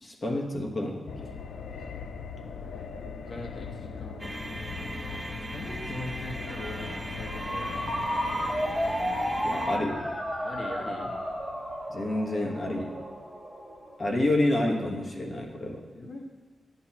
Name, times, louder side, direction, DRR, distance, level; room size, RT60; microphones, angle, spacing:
voice 1, 0.0-1.3 9.4-10.0 11.9-12.9 14.0-15.8, left 1 dB, 30° left, 0 dB, 1.2 m, -28 dB
sound 1, 1.1-12.9 13.2-13.3, left 5 dB, 75° left, 0.4 m, -41 dB
voice 2, 3.3-4.4 5.5-7.9 8.3-8.5 10.4-11.1 15.9-16.2, left 2 dB, 50° left, -1 dB, 1.2 m, -40 dB
sound 2, 4.2-9.8, right 1 dB, 10° right, 0.5 m, -39 dB
Ringtone, 6.5-14.0, equal, 5° left, 1.1 m, -33 dB
10.0 x 7.8 x 2.9 m, 1.4 s
wide cardioid pair, 165°, 0 cm